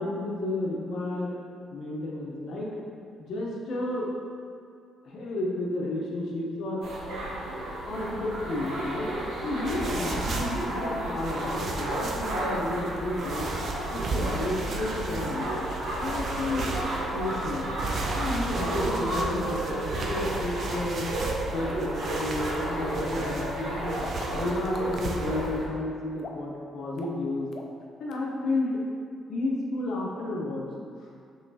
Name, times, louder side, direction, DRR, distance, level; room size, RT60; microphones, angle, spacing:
voice 1, 0.0-1.4 1.7-2.8 3.2-4.1 5.0-7.0 7.9-9.1 9.4-13.5 13.9-15.6 16.0-16.8 17.1-17.7 18.1-21.1 21.5-24.0 24.3-27.5 28.0-28.8 29.3-30.7, left 2 dB, 70° left, -3 dB, 0.9 m, -32 dB
sound 1, 6.8-25.7, right 1 dB, 85° right, 0.9 m, -32 dB
sound 2, 9.6-25.5, right 3 dB, 55° right, 0.5 m, -35 dB
sound 3, 20.2-20.3 20.7-20.8 21.7-22.8 24.0-25.0 26.2-26.6 27.0-27.2 27.5-27.8 28.1-28.2, left 4 dB, 55° left, 0.4 m, -42 dB
5.8 x 3.2 x 2.8 m, 2.3 s
cardioid pair, 90°, 0 cm